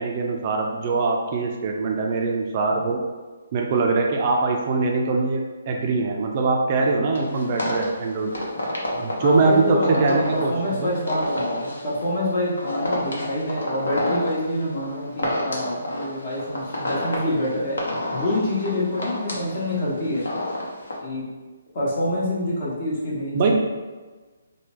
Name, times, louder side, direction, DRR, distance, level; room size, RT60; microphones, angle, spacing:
voice 1, 0.0-3.0 3.5-8.3 9.0-10.5 10.8-10.9 23.3-23.6, right 3 dB, 40° right, 1 dB, 0.4 m, -22 dB
sound 1, 7.1-21.0, left 1 dB, 80° left, 0.8 m, -30 dB
voice 2, 9.2-17.8 18.1-20.2 21.0-21.3 21.7-23.6, left 1 dB, 40° left, -7 dB, 1.3 m, -26 dB
3.2 x 2.2 x 3.1 m, 1.3 s
hypercardioid pair, 150°, 0 cm